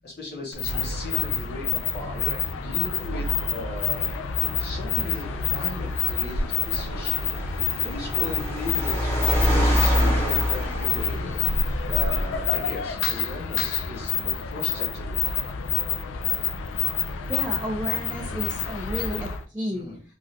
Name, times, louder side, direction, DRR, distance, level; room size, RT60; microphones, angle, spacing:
voice 1, 0.0-4.1 4.6-7.1 7.8-11.3 11.9-15.2 19.7-20.0, left 3 dB, 55° left, -2 dB, 0.8 m, -37 dB
sound 1, 0.5-19.4, left 7 dB, 80° left, 0.3 m, -28 dB
Car, 4.5-12.4, equal, 10° left, 1.1 m, -26 dB
voice 2, 17.3-19.9, equal, 10° right, 0 dB, 0.4 m, -32 dB
3.1 x 2.5 x 2.6 m, 0.39 s
head